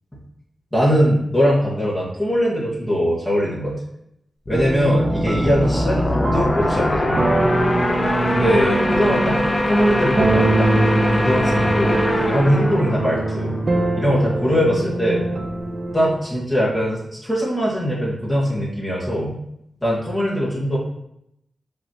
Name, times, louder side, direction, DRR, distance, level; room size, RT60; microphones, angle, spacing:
voice 1, 0.7-3.7 4.5-7.4 8.3-9.4 9.7-13.6 13.9-15.3 15.9-19.4 19.8-20.8, equal, 5° left, -6 dB, 1.5 m, -21 dB
sound 1, 4.5-14.0, left 1 dB, 35° left, 0.6 m, -22 dB
sound 2, 4.5-16.2, right 2 dB, 55° right, 0.5 m, -24 dB
5.5 x 3.2 x 2.9 m, 0.77 s
cardioid pair, 75°, 0 cm